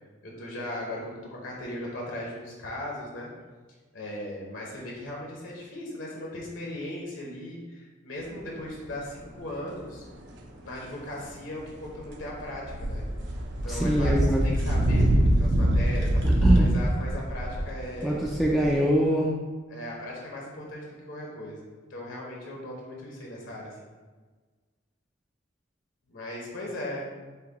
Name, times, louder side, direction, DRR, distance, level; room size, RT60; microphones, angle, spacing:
voice 1, 0.2-1.2 1.4-3.3 3.9-10.0 10.6-13.1 13.6-16.2 16.5-18.2 19.7-23.7 26.1-27.1, left 1 dB, 70° left, -3 dB, 0.9 m, -38 dB
sound 1, 9.2-9.3 11.7-18.9, right 1 dB, 60° right, 0.5 m, -24 dB
voice 2, 13.7-14.4 16.2-16.7 18.0-19.3, equal, ahead, -3 dB, 0.3 m, -24 dB
5.5 x 2.2 x 4.0 m, 1.4 s
head